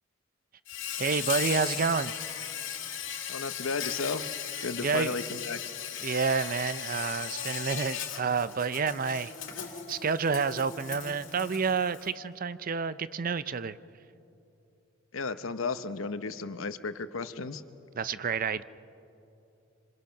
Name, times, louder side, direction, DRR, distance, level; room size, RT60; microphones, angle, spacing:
Insect, 0.7-12.1, left 8 dB, 65° left, 2.2 m, -37 dB
voice 1, 1.0-2.1 4.8-5.2 6.0-9.3 9.9-13.8 17.9-18.6, right 5 dB, 45° right, 15 dB, 0.6 m, -29 dB
voice 2, 3.3-4.3 4.6-5.9 15.1-17.6, left 4 dB, 85° left, 11 dB, 0.9 m, -34 dB
26.5 x 26.0 x 5.9 m, 2.8 s
head